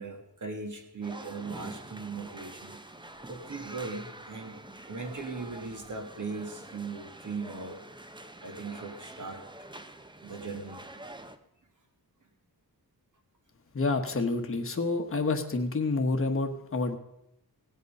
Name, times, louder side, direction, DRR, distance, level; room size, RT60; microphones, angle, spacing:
voice 1, 0.0-2.8 3.2-4.6 4.9-7.8 8.4-9.7 10.2-10.8, right 4 dB, 50° right, 4 dB, 1.8 m, -39 dB
sound 1, 1.0-11.4, right 1 dB, 10° right, 0.7 m, -46 dB
voice 2, 13.7-17.0, left 3 dB, 35° left, 4 dB, 1.2 m, -28 dB
17.5 x 8.2 x 5.3 m, 0.84 s
wide cardioid pair, 165°, 39 cm